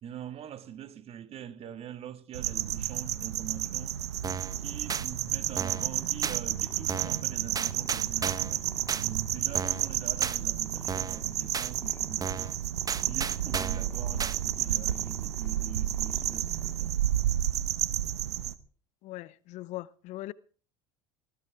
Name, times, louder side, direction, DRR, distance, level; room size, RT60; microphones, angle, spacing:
voice 1, 0.0-4.0 4.6-12.6 13.1-17.0, right 10 dB, 45° right, 1.9 m, -44 dB
sound 1, 2.3-18.5, right 11 dB, 90° right, 0.9 m, -31 dB
Purr, 3.6-17.5, left 3 dB, 20° left, 4.0 m, -54 dB
sound 2, 4.2-4.5 4.9-5.1 5.6-5.9 6.2-6.4 6.9-7.2 7.6-8.5 8.9-9.0 9.5-9.9 10.2-10.4 10.9-11.2 11.5-11.7 12.2-12.5 12.9-13.9 14.2-14.4, right 5 dB, 25° right, 1.0 m, -34 dB
voice 2, 19.0-20.3, left 17 dB, 60° left, 0.8 m, -40 dB
20.0 x 15.0 x 3.5 m
hypercardioid pair, 80°, 14 cm